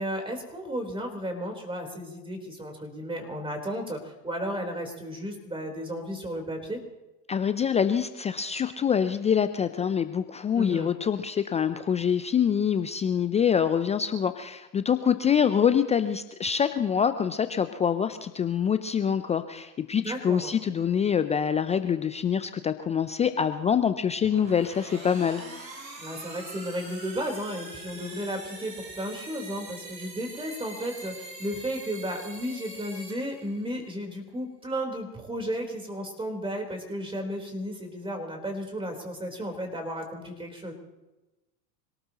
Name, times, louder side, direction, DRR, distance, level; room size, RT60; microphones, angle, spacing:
voice 1, 0.0-6.8 10.5-10.9 20.0-20.5 26.0-40.7, equal, 10° right, 3 dB, 3.9 m, -34 dB
voice 2, 7.3-25.4, left 7 dB, 15° left, 11 dB, 0.4 m, -25 dB
sound 1, 24.2-33.9, right 2 dB, 90° right, 6.0 m, -43 dB
26.5 x 18.0 x 3.0 m, 1.0 s
hypercardioid pair, 95°, 49 cm